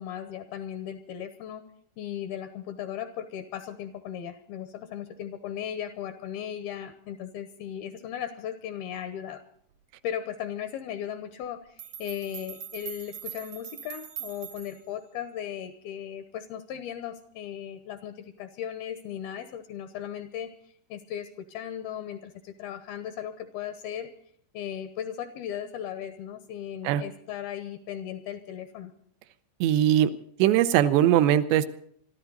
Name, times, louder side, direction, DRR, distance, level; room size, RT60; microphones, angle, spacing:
voice 1, 0.0-1.7 2.0-9.4 10.0-20.5 20.9-24.1 24.5-28.9, left 9 dB, 75° left, 10 dB, 2.4 m, -37 dB
sound 1, 11.4-11.5 11.8-14.9, right 9 dB, 65° right, 1.9 m, -41 dB
voice 2, 29.6-30.1 30.4-31.7, right 11 dB, 80° right, 12 dB, 2.7 m, -20 dB
25.5 x 13.0 x 4.0 m, 0.66 s
omnidirectional pair, 5.3 m